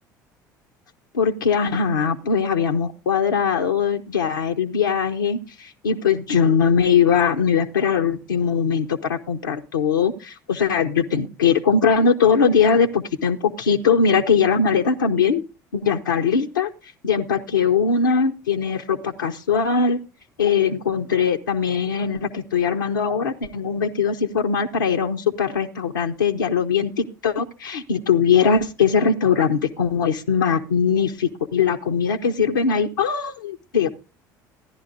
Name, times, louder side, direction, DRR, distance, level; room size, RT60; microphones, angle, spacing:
voice 1, 1.1-15.4 15.7-16.7 17.0-20.0 20.4-33.9, left 6 dB, 85° left, 2 dB, 0.5 m, -21 dB
15.5 x 10.5 x 2.6 m, 0.31 s
hypercardioid pair, 65°, 10 cm